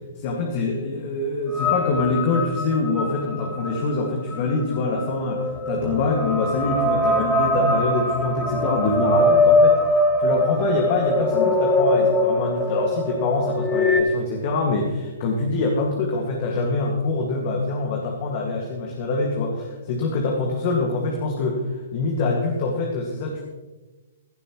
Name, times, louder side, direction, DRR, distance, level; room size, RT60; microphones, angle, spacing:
voice 1, 0.2-9.8 10.2-21.6 21.9-23.4, left 3 dB, 45° left, 0 dB, 2.0 m, -24 dB
sound 1, 1.5-14.0, left 1 dB, 10° left, 1.6 m, -22 dB
16.0 x 12.0 x 3.2 m, 1.2 s
hypercardioid pair, 125°, 0 cm